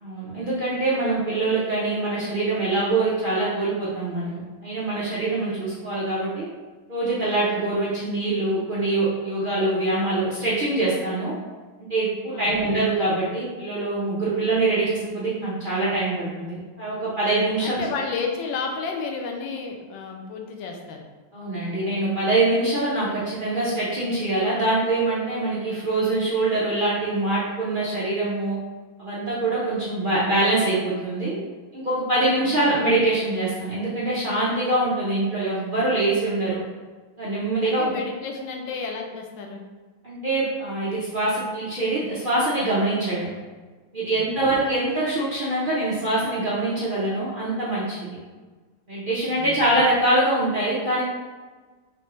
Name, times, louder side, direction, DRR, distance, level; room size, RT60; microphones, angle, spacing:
voice 1, 0.0-6.5 6.9-11.4 11.9-17.8 21.3-28.6 29.0-31.4 31.7-36.6 37.2-37.9 40.0-43.3 43.9-48.0 48.9-51.0, right 2 dB, 50° right, -9 dB, 0.6 m, -24 dB
voice 2, 12.3-12.7 17.6-21.0 32.4-32.8 37.6-39.7 44.1-44.5 49.4-49.6, left 4 dB, 90° left, 2 dB, 1.4 m, -32 dB
5.1 x 2.8 x 3.0 m, 1.3 s
omnidirectional pair, 2.0 m